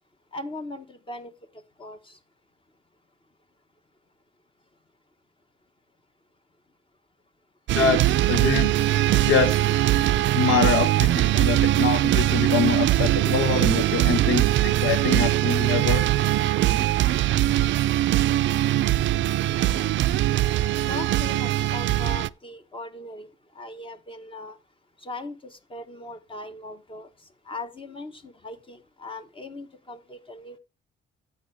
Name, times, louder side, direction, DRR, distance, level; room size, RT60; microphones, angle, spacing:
voice 1, 0.3-1.3 1.8-2.2 19.5-19.9 20.8-23.3 23.5-24.6 25.0-27.1 27.4-30.6, left 2 dB, 25° left, 1.2 m, -39 dB
sound 1, 7.7-22.3, right 14 dB, 70° right, 0.4 m, -21 dB
voice 2, 8.3-8.7 9.2-9.5 10.3-16.1, left 6 dB, 80° left, 1.0 m, -25 dB
10.5 x 7.8 x 3.3 m
cardioid pair, 90°, 20 cm